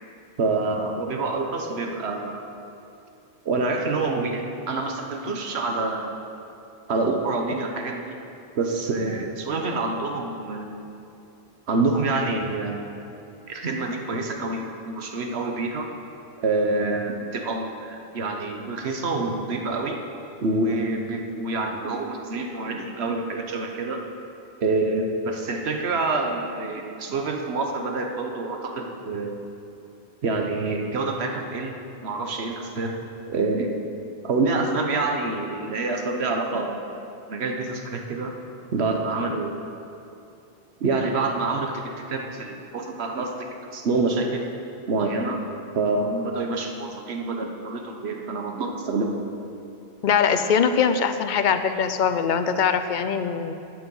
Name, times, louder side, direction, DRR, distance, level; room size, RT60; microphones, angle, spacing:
voice 1, 0.4-2.5 3.4-6.1 6.9-8.1 8.5-10.8 11.7-12.9 13.5-15.9 16.4-20.0 20.4-24.0 24.6-29.4 30.2-33.0 33.3-33.7 34.2-36.8 37.3-38.4 38.7-39.6 40.8-44.5 44.9-45.4 45.7-49.2, right 3 dB, 80° right, 3 dB, 1.3 m, -27 dB
voice 2, 50.0-53.5, left 6 dB, 55° left, 10 dB, 0.7 m, -22 dB
11.5 x 9.2 x 5.5 m, 2.7 s
omnidirectional pair, 1.1 m